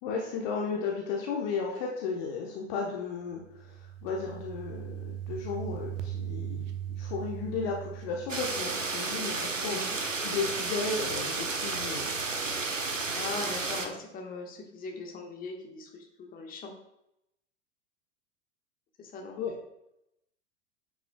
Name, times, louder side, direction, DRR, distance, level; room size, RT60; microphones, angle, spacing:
voice 1, 0.0-3.7 4.0-6.7 7.0-9.8 10.1-12.2 19.4-19.5, left 5 dB, 40° left, -1 dB, 1.1 m, -34 dB
sound 1, 3.3-9.0, right 10 dB, 30° right, 0.8 m, -39 dB
sound 2, 8.3-13.9, right 4 dB, 90° right, 0.8 m, -32 dB
voice 2, 9.5-10.0 13.1-16.7 19.0-19.4, left 3 dB, 25° left, 2 dB, 1.4 m, -40 dB
9.4 x 6.0 x 2.3 m, 0.83 s
figure-of-eight pair, 95°, 37 cm